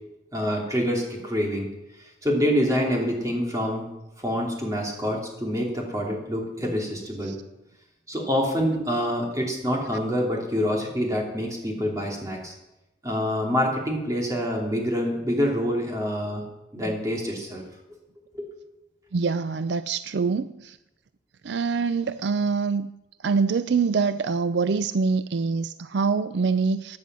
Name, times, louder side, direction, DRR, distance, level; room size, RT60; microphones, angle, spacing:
voice 1, 0.3-1.7 2.2-3.9 4.2-7.4 8.1-12.5 13.0-16.4 16.7-17.6 18.3-18.5, equal, 20° right, -1 dB, 3.0 m, -26 dB
voice 2, 19.1-20.8 21.4-22.9 23.2-27.0, right 4 dB, 70° right, 13 dB, 0.4 m, -25 dB
16.0 x 9.7 x 6.2 m, 0.96 s
head